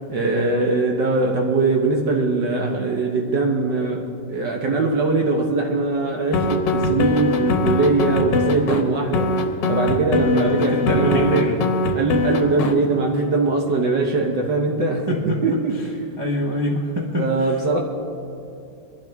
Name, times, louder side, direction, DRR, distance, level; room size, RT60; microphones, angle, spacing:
voice 1, 0.1-9.4 9.7-11.5 11.9-15.8 17.2-17.8, right 3 dB, 60° right, 1 dB, 1.6 m, -21 dB
sound 1, 6.3-8.8 9.1-12.7, left 3 dB, 65° left, 1.6 m, -21 dB
voice 2, 10.3-11.6 15.1-15.4 16.2-17.3, left 1 dB, 20° right, -2 dB, 0.8 m, -25 dB
22.5 x 12.0 x 3.5 m, 2.5 s
omnidirectional pair, 2.2 m